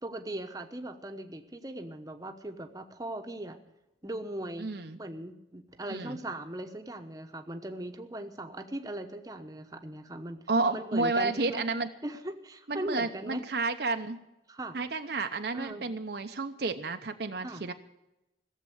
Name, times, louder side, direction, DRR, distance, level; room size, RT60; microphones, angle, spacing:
voice 1, 0.0-3.6 4.0-4.7 5.0-10.4 10.7-11.6 12.0-13.4 14.5-14.8 15.5-15.9 17.4-17.6, right 1 dB, 20° right, 5 dB, 1.0 m, -39 dB
voice 2, 4.6-5.0 5.9-6.2 10.5-11.9 12.7-14.2 14.7-17.7, right 3 dB, 55° right, 6 dB, 0.8 m, -31 dB
16.5 x 7.6 x 9.1 m, 0.91 s
head